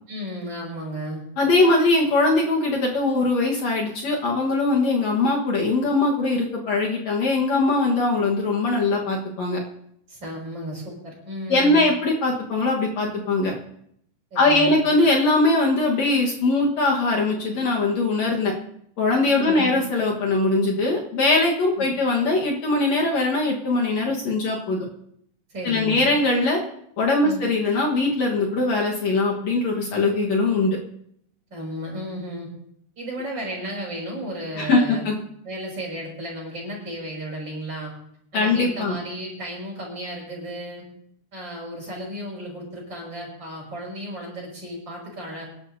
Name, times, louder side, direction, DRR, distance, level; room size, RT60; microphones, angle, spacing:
voice 1, 0.1-1.2 10.1-11.8 14.3-14.8 19.3-19.8 21.8-21.9 25.5-26.4 27.2-27.4 31.5-32.5 33.0-35.0 35.4-37.9 38.3-40.9 41.3-45.5, equal, 35° right, -3 dB, 6.4 m, -34 dB
voice 2, 1.4-9.6 11.5-13.5 14.4-18.5 19.0-24.9 25.6-26.6 27.0-30.8 34.6-35.2 38.3-39.0, left 2 dB, 60° left, -2 dB, 2.5 m, -21 dB
26.0 x 11.5 x 2.7 m, 0.70 s
omnidirectional pair, 3.7 m